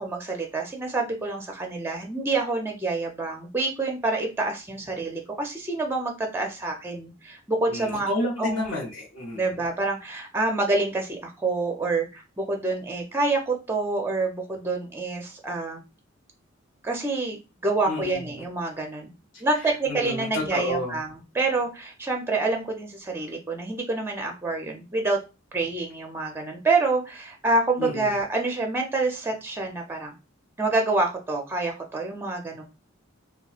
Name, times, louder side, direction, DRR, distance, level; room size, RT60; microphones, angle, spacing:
voice 1, 0.0-8.1 8.4-8.7 9.3-15.8 16.8-19.1 19.4-25.2 25.5-30.1 30.6-32.6, right 3 dB, 10° right, 2 dB, 0.5 m, -27 dB
voice 2, 7.7-9.5 17.9-18.4 19.9-21.0 27.8-28.1, left 1 dB, 65° left, -7 dB, 1.1 m, -30 dB
3.0 x 2.3 x 2.4 m, 0.28 s
head